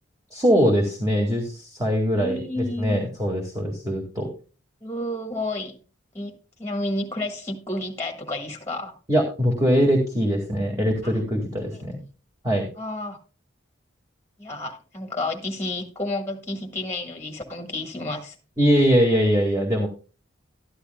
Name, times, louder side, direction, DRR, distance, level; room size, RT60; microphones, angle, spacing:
voice 1, 0.3-4.3 9.1-12.0 12.4-12.7 18.6-19.9, equal, 15° right, 0 dB, 1.9 m, -22 dB
voice 2, 2.2-3.1 4.8-5.8 6.1-8.9 11.0-11.1 11.7-11.8 12.8-13.2 14.4-18.3, left 2 dB, 10° left, 3 dB, 1.4 m, -31 dB
13.0 x 11.5 x 2.2 m, 0.33 s
head